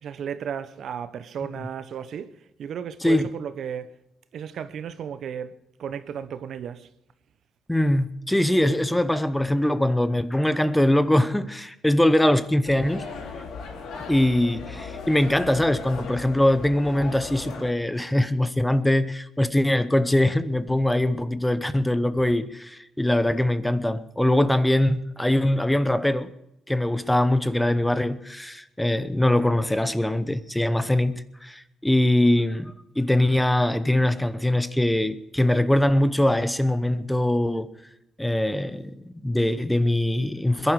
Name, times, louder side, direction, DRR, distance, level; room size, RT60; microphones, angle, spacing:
voice 1, 0.0-3.9 4.3-6.9, right 8 dB, 65° right, 0.9 m, -34 dB
voice 2, 7.7-13.1 14.1-26.3 26.7-37.7 38.2-40.7, left 1 dB, 5° left, 0.8 m, -22 dB
sound 1, 12.6-17.7, left 4 dB, 80° left, 3.0 m, -37 dB
21.5 x 11.0 x 4.8 m
cardioid pair, 90°, 0 cm